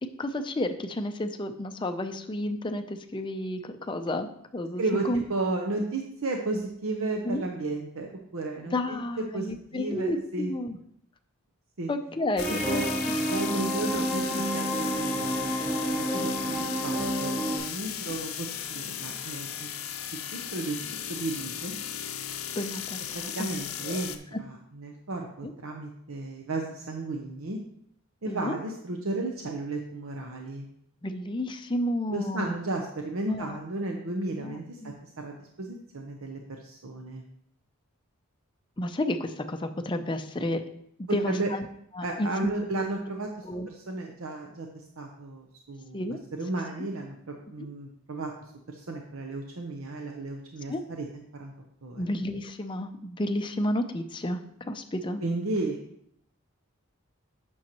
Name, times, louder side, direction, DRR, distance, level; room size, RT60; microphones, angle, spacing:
voice 1, 0.2-5.2 7.2-7.4 8.7-10.8 11.9-12.8 13.1-13.2 22.6-23.0 23.9-24.0 25.4-25.5 28.3-28.6 31.0-32.6 33.3-33.6 34.4-34.9 38.8-40.6 41.0-41.6 42.0-42.5 43.5-43.7 45.9-46.2 50.7-50.8 52.0-54.4 54.7-55.2, left 1 dB, 20° left, 7 dB, 0.5 m, -31 dB
voice 2, 4.8-10.5 11.8-11.9 12.5-12.9 13.3-15.6 15.9-19.7 20.3-20.8 21.1-21.7 23.1-27.6 28.2-30.7 32.1-37.2 41.3-41.5 42.0-46.0 46.3-48.3 48.7-51.5 51.8-52.0 55.2-55.8, right 2 dB, 70° right, 2 dB, 0.8 m, -34 dB
sound 1, 12.4-24.2, left 9 dB, 70° left, 0.6 m, -36 dB
sound 2, 12.4-17.6, right 1 dB, ahead, 1.7 m, -29 dB
8.7 x 6.3 x 3.0 m, 0.72 s
head